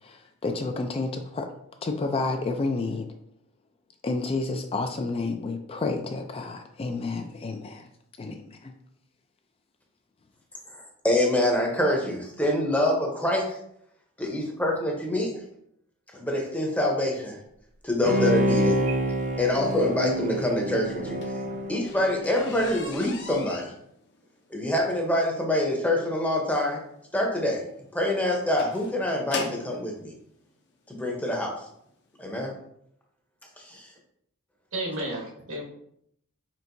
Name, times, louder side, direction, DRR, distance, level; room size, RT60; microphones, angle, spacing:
voice 1, 0.0-1.5 1.8-3.1 4.0-7.9 8.2-8.7, left 3 dB, 25° left, 5 dB, 0.3 m, -30 dB
voice 2, 10.7-13.6 14.2-15.4 16.1-17.4 17.8-18.8 19.4-21.4 21.7-23.7 24.5-26.8 27.1-27.6 27.9-30.1 30.9-31.5 32.2-32.5 33.6-33.9, left 1 dB, 5° left, 0 dB, 0.7 m, -26 dB
Bowed string instrument, 18.0-22.6 23.0-23.1, equal, 35° right, 0.6 m, -27 dB
sound 1, 20.9-29.8 30.7-30.8 31.4-31.6 31.9-32.0 32.3-32.4, left 4 dB, 50° left, 0.7 m, -40 dB
voice 3, 34.7-35.6, right 1 dB, 60° right, -1 dB, 1.2 m, -32 dB
4.5 x 4.4 x 2.6 m, 0.72 s
head